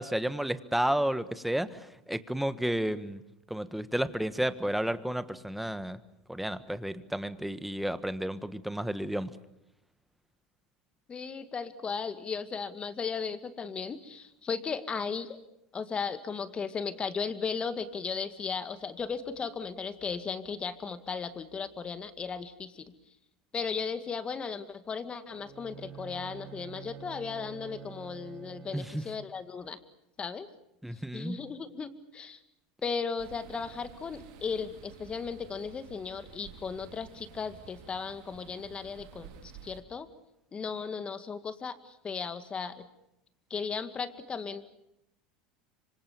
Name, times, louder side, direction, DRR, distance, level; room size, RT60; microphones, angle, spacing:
voice 1, 0.0-3.2 3.5-6.0 6.3-9.3 28.7-29.0 30.8-31.4, right 1 dB, 5° right, 12 dB, 1.5 m, -32 dB
voice 2, 11.1-15.4 15.7-22.9 23.5-29.8 30.2-30.5 31.1-32.4 32.8-40.1 40.5-42.8 43.5-44.7, left 5 dB, 25° left, 11 dB, 2.0 m, -36 dB
Bowed string instrument, 25.3-29.4, right 8 dB, 40° right, 5.2 m, -47 dB
sound 1, 33.2-39.8, right 8 dB, 70° right, 3.4 m, -51 dB
26.0 x 25.5 x 6.9 m, 0.82 s
hypercardioid pair, 95°, 4 cm